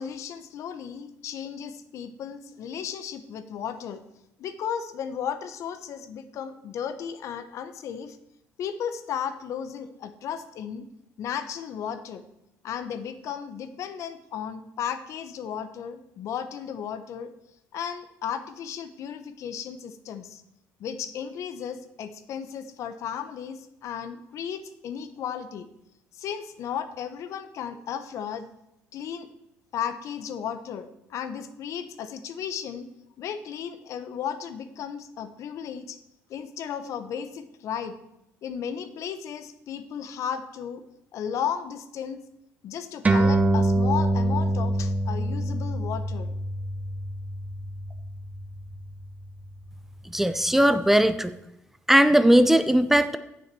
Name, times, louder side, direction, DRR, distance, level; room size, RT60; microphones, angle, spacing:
voice 1, 0.0-4.0 4.4-8.2 8.6-10.8 11.2-12.2 12.6-17.3 17.7-20.4 20.8-25.7 26.2-28.5 28.9-29.3 29.7-32.9 33.2-36.0 36.3-38.0 38.4-40.8 41.1-42.2 42.6-46.4, left 8 dB, 65° left, 11 dB, 0.8 m, -34 dB
sound 1, 43.0-49.9, right 1 dB, 25° right, 1.0 m, -26 dB
voice 2, 50.1-51.3 51.9-53.2, right 1 dB, 5° right, 11 dB, 0.6 m, -19 dB
7.3 x 6.3 x 6.8 m, 0.85 s
cardioid pair, 85°, 6 cm